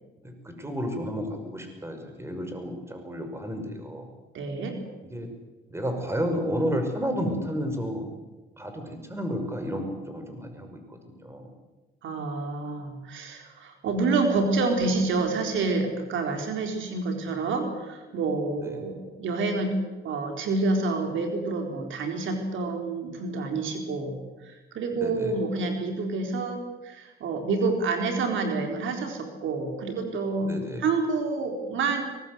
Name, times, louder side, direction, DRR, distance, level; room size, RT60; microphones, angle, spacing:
voice 1, 0.2-4.1 5.1-5.3 5.7-8.1 8.6-11.5 18.6-18.9 25.0-25.4 30.4-30.8, equal, 15° right, 5 dB, 5.7 m, -32 dB
voice 2, 4.3-4.7 12.0-19.7 20.0-32.0, right 3 dB, 75° right, 4 dB, 4.2 m, -28 dB
23.5 x 20.5 x 8.0 m, 1.2 s
cardioid pair, 90°, 20 cm